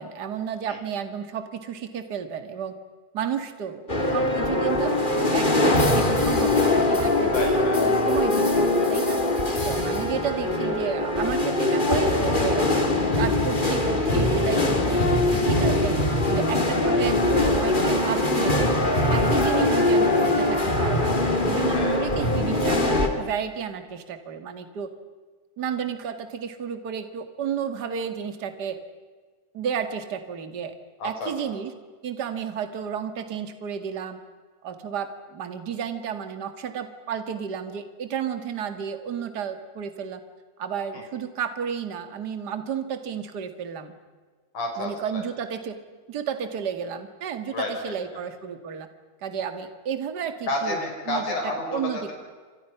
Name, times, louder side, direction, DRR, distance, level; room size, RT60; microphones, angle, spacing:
voice 1, 0.0-2.7 3.1-4.9 5.3-9.2 9.6-12.7 13.2-16.0 16.3-18.8 19.1-21.1 21.5-24.9 25.6-28.8 29.5-30.7 31.0-31.7 32.0-34.2 34.6-40.2 40.6-43.9 44.8-45.8 46.1-48.9 49.2-50.8 51.1-51.2 51.7-52.1, right 8 dB, 35° right, 9 dB, 2.1 m, -32 dB
sound 1, 3.9-23.1, left 2 dB, 15° left, 2.4 m, -22 dB
voice 2, 7.3-7.8 8.1-8.3 9.5-9.8 21.7-22.0 31.0-31.6 40.9-41.0 44.5-45.2 47.5-47.9 50.5-52.1, left 2 dB, 85° left, 1 dB, 7.0 m, -31 dB
29.5 x 26.0 x 5.9 m, 1.4 s
omnidirectional pair, 3.5 m